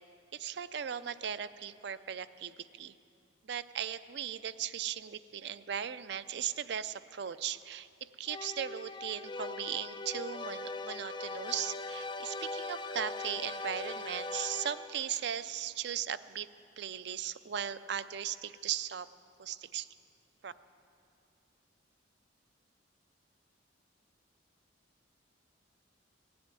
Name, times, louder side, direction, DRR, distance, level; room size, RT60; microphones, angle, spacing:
voice 1, 0.3-2.9 3.4-16.5 16.8-19.1 19.4-19.9 20.4-20.5, right 9 dB, 55° right, 14 dB, 0.4 m, -38 dB
sound 1, 8.3-15.1, left 3 dB, 25° left, 0.4 m, -40 dB
16.5 x 7.8 x 9.7 m, 2.5 s
head